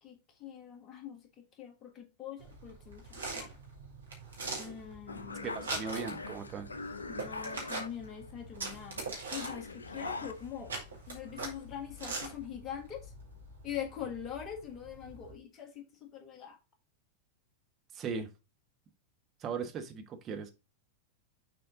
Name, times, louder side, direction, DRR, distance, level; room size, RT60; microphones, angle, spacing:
voice 1, 0.0-1.2 1.6-3.5 4.6-5.7 7.1-10.7 11.1-13.1 13.6-16.6, left 9 dB, 30° left, 1.6 m, -43 dB
sound 1, 2.4-15.3, right 2 dB, 75° right, 2.2 m, -43 dB
sound 2, 5.1-8.3 8.6-11.0 11.3-11.6, left 3 dB, 75° left, 0.6 m, -43 dB
voice 2, 5.4-6.7 17.9-18.3 19.4-20.5, right 5 dB, 30° right, 1.1 m, -38 dB
6.7 x 4.2 x 3.7 m
figure-of-eight pair, 90°, 0 cm